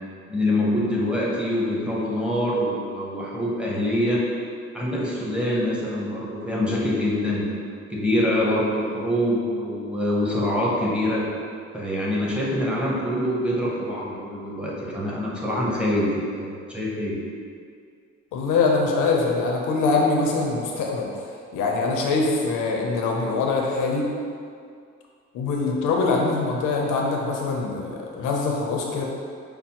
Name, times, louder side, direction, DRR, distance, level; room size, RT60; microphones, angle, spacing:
voice 1, 0.3-4.2 4.7-7.4 7.9-11.3 11.7-16.1 16.3-17.2, left 1 dB, 5° right, -6 dB, 0.8 m, -25 dB
voice 2, 18.3-21.3 21.5-24.1 25.3-29.0, left 3 dB, 85° left, 0 dB, 0.6 m, -23 dB
5.3 x 2.0 x 2.8 m, 2.3 s
cardioid pair, 90°, 30 cm